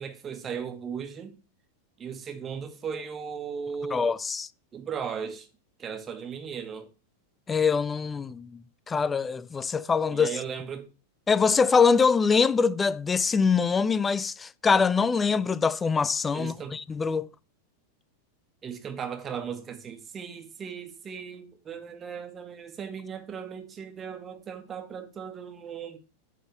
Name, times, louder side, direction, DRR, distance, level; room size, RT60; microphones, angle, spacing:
voice 1, 0.0-1.3 2.0-4.1 4.7-5.5 5.8-6.9 10.1-10.9 16.3-16.8 18.6-26.0, right 7 dB, 25° right, 1.4 m, -37 dB
voice 2, 3.9-4.5 7.5-10.3 11.3-17.3, left 5 dB, 15° left, 0.4 m, -24 dB
9.1 x 4.0 x 6.9 m
figure-of-eight pair, 90°, 0 cm